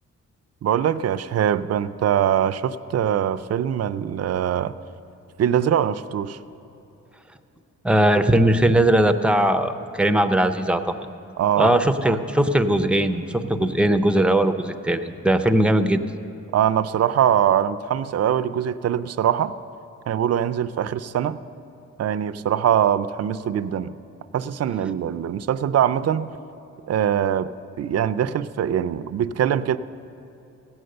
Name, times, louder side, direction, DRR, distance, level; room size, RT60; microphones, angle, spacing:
voice 1, 0.6-4.7 5.4-6.4 11.4-11.8 16.5-19.5 20.1-21.4 22.0-24.0 24.3-26.3 26.9-27.5 27.8-29.8, right 9 dB, 55° right, 13 dB, 0.4 m, -22 dB
voice 2, 7.8-10.9 11.6-16.0, right 1 dB, 5° right, 8 dB, 0.5 m, -19 dB
16.5 x 7.9 x 6.5 m, 2.9 s
cardioid pair, 105°, 30 cm